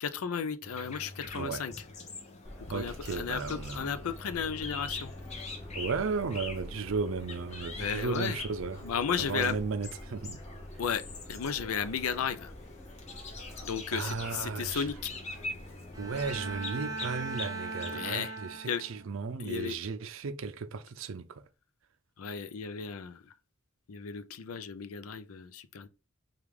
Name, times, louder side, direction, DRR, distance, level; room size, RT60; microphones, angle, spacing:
voice 1, 0.0-1.7 2.7-5.1 7.8-8.4 8.8-9.6 10.8-11.0 11.3-12.5 13.6-15.1 17.9-18.4 18.7-18.8 19.4-19.7 22.2-23.2 23.9-25.9, left 7 dB, 90° left, 0.5 m, -34 dB
sound 1, 0.6-18.2, left 3 dB, 30° left, 0.8 m, -44 dB
voice 2, 1.3-1.7 2.7-4.0 5.7-8.8 9.2-10.4 13.9-14.9 16.0-21.4, right 4 dB, 65° right, 0.4 m, -35 dB
Subway metro underground, 2.4-16.7, equal, 15° left, 1.1 m, -47 dB
Bowed string instrument, 15.9-19.1, right 3 dB, 15° right, 0.5 m, -39 dB
4.7 x 2.4 x 3.5 m
head